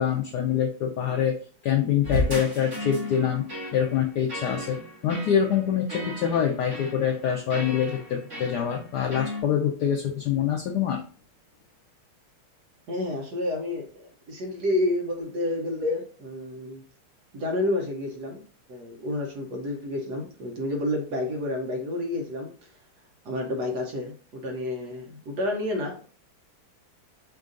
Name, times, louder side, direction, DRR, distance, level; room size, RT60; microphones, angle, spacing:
voice 1, 0.0-1.4 1.6-3.5 3.7-4.8 5.0-11.0, left 8 dB, 80° left, 1 dB, 0.9 m, -25 dB
sound 1, 2.0-9.4, left 1 dB, 35° right, 1.9 m, -35 dB
voice 2, 12.9-16.8 17.3-18.4 18.7-22.5 23.2-26.0, left 1 dB, 60° right, 1 dB, 1.1 m, -29 dB
5.4 x 2.5 x 3.7 m, 0.42 s
omnidirectional pair, 2.4 m